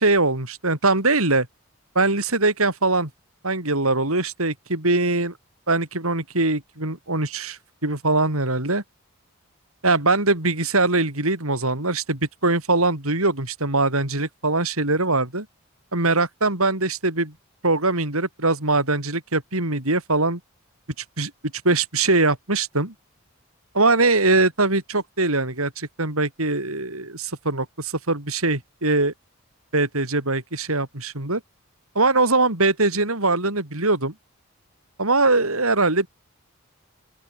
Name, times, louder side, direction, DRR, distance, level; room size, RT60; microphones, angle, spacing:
voice 1, 0.0-1.5 2.0-3.1 3.4-5.3 5.7-8.8 9.8-15.5 15.9-17.3 17.6-20.4 21.2-21.3 21.6-22.9 23.7-29.1 29.7-31.4 31.9-34.1 35.0-36.1, right 2 dB, 80° right, 5.9 m, -22 dB
open air
head